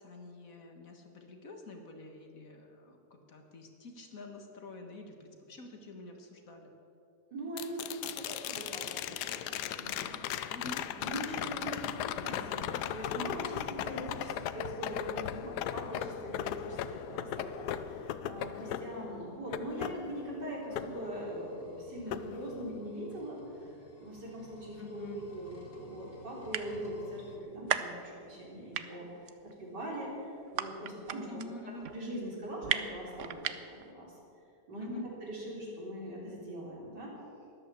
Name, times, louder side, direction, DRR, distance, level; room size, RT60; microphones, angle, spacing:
voice 1, 0.0-6.7 10.5-10.9 24.8-25.2 31.3-31.9 34.8-35.1, left 2 dB, 55° left, 4 dB, 1.9 m, -48 dB
voice 2, 7.3-10.2 11.0-23.4 24.0-25.0 25.3-29.1 29.4-31.3 31.9-34.1 34.7-37.1, right 1 dB, 80° right, -3 dB, 4.3 m, -41 dB
sound 1, 7.6-21.7 22.1-23.1 25.4-25.5, left 10 dB, 75° left, 1.2 m, -38 dB
sound 2, 20.4-27.4, left 2 dB, 30° left, 2.0 m, -56 dB
sound 3, 25.0-25.1 25.7-25.8 26.1-26.2 26.4-27.0 27.4-28.5 28.7-33.9, right 9 dB, 60° right, 0.9 m, -35 dB
13.0 x 11.5 x 8.2 m, 2.7 s
omnidirectional pair, 1.8 m